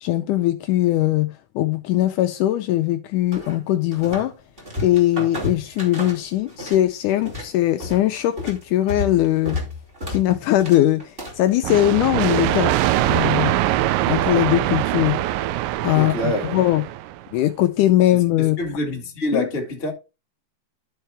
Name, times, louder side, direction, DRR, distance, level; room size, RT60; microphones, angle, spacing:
voice 1, 0.0-4.3 4.8-9.6 10.1-12.7 13.1-13.5 14.0-15.2 15.8-16.1 16.5-16.8 17.3-18.6 19.3-19.5, left 14 dB, 80° left, 1.9 m, -20 dB
sound 1, 3.3-4.3 4.6-6.8 7.1-11.5, left 2 dB, 20° right, 2.1 m, -32 dB
sound 2, 11.6-17.2, right 14 dB, 80° right, 2.2 m, -22 dB
voice 2, 15.9-16.6 18.4-19.9, left 1 dB, 30° left, 1.1 m, -26 dB
12.5 x 4.5 x 3.4 m
omnidirectional pair, 4.1 m